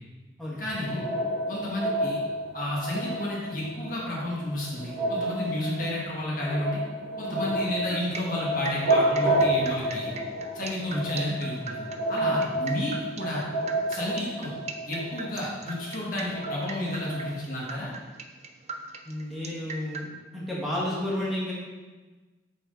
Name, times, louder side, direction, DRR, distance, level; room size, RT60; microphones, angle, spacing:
voice 1, 0.6-1.0 1.5-2.2 2.5-6.8 7.2-10.1 10.5-11.8 12.1-13.4 13.9-14.5 14.8-17.9, left 1 dB, 45° left, -5 dB, 1.5 m, -31 dB
sound 1, 0.7-17.4, right 1 dB, 75° right, 1.9 m, -30 dB
sound 2, 7.9-20.1, right 4 dB, 35° right, 0.4 m, -40 dB
voice 2, 19.0-20.1 20.3-21.5, left 1 dB, ahead, -9 dB, 1.6 m, -31 dB
6.0 x 5.9 x 3.9 m, 1.3 s
head